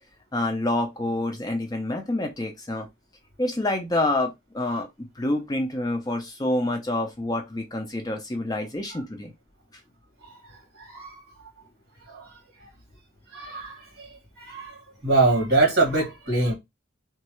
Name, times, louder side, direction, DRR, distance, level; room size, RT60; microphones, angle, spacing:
voice 1, 0.3-2.9 3.4-4.9 5.2-9.3, left 1 dB, 20° left, 0.4 m, -27 dB
voice 2, 10.8-11.2 12.1-12.3 13.3-14.1 14.4-14.7 15.0-16.5, right 2 dB, 50° right, 1.8 m, -23 dB
3.1 x 2.3 x 2.9 m
head